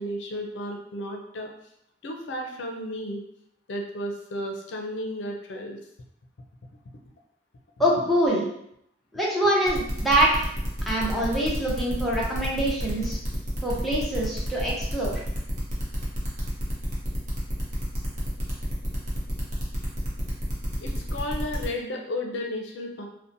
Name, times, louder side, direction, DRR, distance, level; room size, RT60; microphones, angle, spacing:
voice 1, 0.0-1.5 2.0-3.2 3.7-5.8 20.8-23.1, left 1 dB, 75° left, 1 dB, 0.4 m, -33 dB
voice 2, 7.8-8.4 9.1-10.5 10.8-13.2 13.6-15.2, right 1 dB, ahead, -6 dB, 0.5 m, -24 dB
sound 1, 9.7-21.6, equal, 40° right, 0.7 m, -31 dB
2.7 x 2.1 x 2.6 m, 0.73 s
head